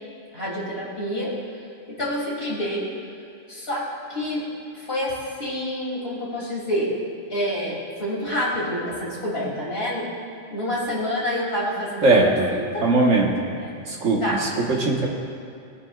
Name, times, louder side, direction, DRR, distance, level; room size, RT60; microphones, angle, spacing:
voice 1, 0.3-1.3 1.9-2.9 3.5-4.5 4.7-5.1 5.4-6.9 7.3-10.1 10.5-12.9 13.6-13.7 14.2-14.5, equal, 55° left, -5 dB, 3.1 m, -28 dB
voice 2, 12.0-12.5 12.8-13.6 13.9-15.1, right 2 dB, 80° right, -1 dB, 1.8 m, -20 dB
19.0 x 9.6 x 2.4 m, 2.4 s
omnidirectional pair, 1.3 m